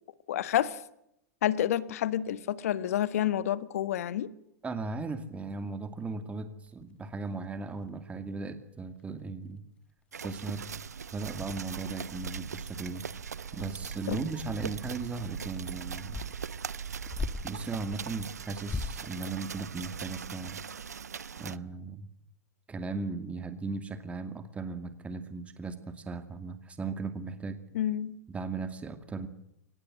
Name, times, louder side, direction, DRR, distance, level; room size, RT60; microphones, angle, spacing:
voice 1, 0.3-0.8 1.4-4.3 14.1-14.2 27.7-28.2, left 11 dB, 65° left, 16 dB, 1.6 m, -29 dB
voice 2, 4.6-9.6 10.2-10.7 11.1-13.1 13.5-16.2 17.4-20.6 21.4-22.1 22.7-27.6 28.3-29.3, right 3 dB, 15° right, 9 dB, 2.4 m, -37 dB
sound 1, 6.6-8.1 8.7-8.8 9.0-9.2 9.6-9.7 10.0-10.5 10.9-11.0 11.4-17.7 18.5-19.1, left 3 dB, 10° left, 1.4 m, -42 dB
sound 2, 10.1-21.6, right 7 dB, 85° right, 0.8 m, -40 dB
24.0 x 19.5 x 7.7 m, 0.77 s
hypercardioid pair, 105°, 9 cm